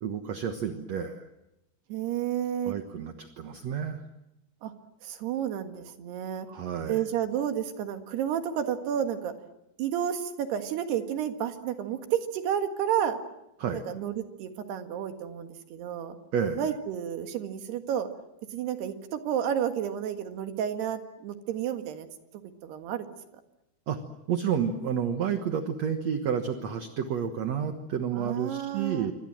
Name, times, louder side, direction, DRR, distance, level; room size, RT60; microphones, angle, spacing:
voice 1, 0.0-1.2 2.6-4.0 6.5-7.0 13.6-13.8 16.3-16.6 23.9-24.0 24.3-29.1, right 7 dB, 60° right, 7 dB, 1.9 m, -30 dB
voice 2, 1.9-2.8 4.6-4.7 5.0-6.5 6.9-9.3 9.8-13.2 13.7-16.2 16.6-18.1 18.5-22.1 22.6-23.1 28.2-29.1, right 9 dB, 80° right, 7 dB, 3.8 m, -31 dB
27.5 x 25.0 x 7.6 m, 0.89 s
omnidirectional pair, 4.7 m